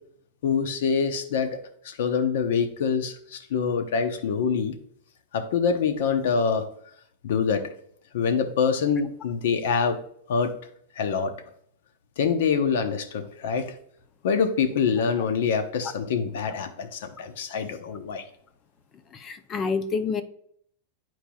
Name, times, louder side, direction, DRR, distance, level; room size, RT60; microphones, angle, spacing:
voice 1, 0.4-1.6 1.8-4.7 5.3-6.7 7.2-7.7 8.1-10.0 10.3-10.5 11.0-11.3 12.2-13.7 14.2-18.2, left 6 dB, 70° left, 8 dB, 0.9 m, -25 dB
voice 2, 19.1-20.2, left 5 dB, 25° left, 10 dB, 0.5 m, -28 dB
10.0 x 4.5 x 2.3 m, 0.64 s
supercardioid pair, 150°, 0 cm